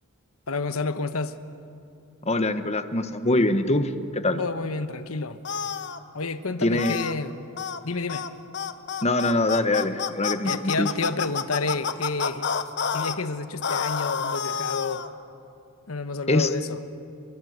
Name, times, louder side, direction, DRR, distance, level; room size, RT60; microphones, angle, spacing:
voice 1, 0.5-1.4 4.4-5.4 6.1-7.5 7.8-8.3 10.4-12.5 12.9-15.1 15.9-16.8, left 3 dB, 75° left, 10 dB, 1.2 m, -30 dB
voice 2, 2.2-4.4 6.6-7.0 9.0-10.9 16.3-16.5, left 2 dB, 30° left, 10 dB, 1.3 m, -23 dB
sound 1, 5.4-6.0 6.8-7.1 7.6-7.8 8.1-8.3 8.5-13.2 13.6-15.1, left 6 dB, 55° left, 1.1 m, -29 dB
29.0 x 23.5 x 8.1 m, 2.6 s
head